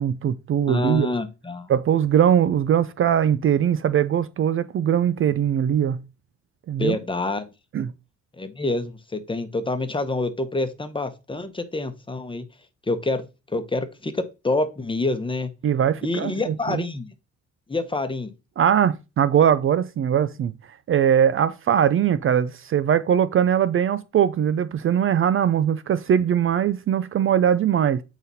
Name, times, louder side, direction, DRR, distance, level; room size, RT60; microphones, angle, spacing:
voice 1, 0.0-1.1 1.7-6.0 6.7-7.0 7.7-7.9 15.6-16.8 18.6-20.5 20.9-28.0, right 9 dB, 45° right, 0.4 m, -21 dB
voice 2, 0.7-1.7 6.8-7.5 8.4-12.4 12.9-15.5 16.0-17.1 17.7-18.3, left 2 dB, 15° left, 1.1 m, -27 dB
7.9 x 4.1 x 4.1 m
cardioid pair, 90°, 30 cm